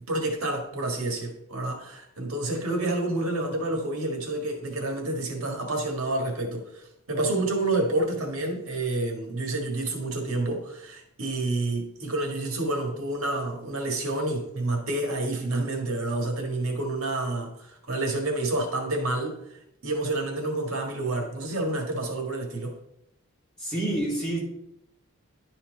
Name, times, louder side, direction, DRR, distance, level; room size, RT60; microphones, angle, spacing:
voice 1, 0.0-6.8 7.1-19.4 19.8-22.8, right 2 dB, 85° right, 1.7 m, -29 dB
voice 2, 23.6-24.4, right 1 dB, 5° left, 2.7 m, -27 dB
11.0 x 4.3 x 3.9 m
head